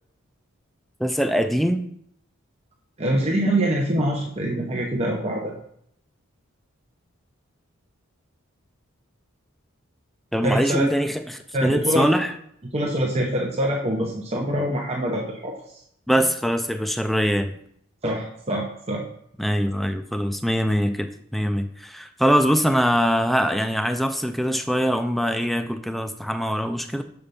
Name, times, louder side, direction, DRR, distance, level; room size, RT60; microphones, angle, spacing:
voice 1, 1.0-1.8 10.3-12.3 16.1-17.5 19.4-27.0, equal, ahead, 8 dB, 0.3 m, -23 dB
voice 2, 3.0-5.6 10.4-10.9 11.5-12.1 12.7-15.5 18.0-19.0, right 1 dB, 30° right, -1 dB, 0.8 m, -24 dB
7.0 x 4.5 x 5.3 m, 0.71 s
head